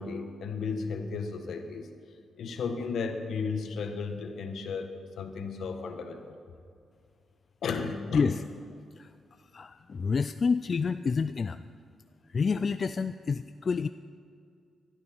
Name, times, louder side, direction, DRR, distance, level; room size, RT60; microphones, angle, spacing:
voice 1, 0.0-1.9 2.4-6.4 7.6-8.4, left 5 dB, 75° left, 6 dB, 1.5 m, -34 dB
voice 2, 9.5-11.6 12.3-13.9, left 5 dB, 45° left, 11 dB, 0.4 m, -28 dB
19.5 x 12.5 x 4.4 m, 2.3 s
cardioid pair, 75°, 0 cm